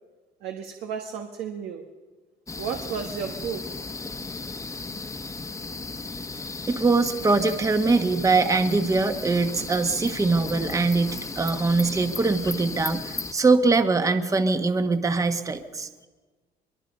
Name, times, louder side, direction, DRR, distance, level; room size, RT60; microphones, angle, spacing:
voice 1, 0.4-1.9 2.6-3.8, right 7 dB, 85° right, 4 dB, 1.5 m, -33 dB
sound 1, 2.5-13.3, left 3 dB, 20° left, 1.2 m, -35 dB
voice 2, 6.7-15.9, right 3 dB, 20° right, 8 dB, 1.2 m, -22 dB
22.5 x 22.5 x 5.4 m, 1.4 s
cardioid pair, 110°, 17 cm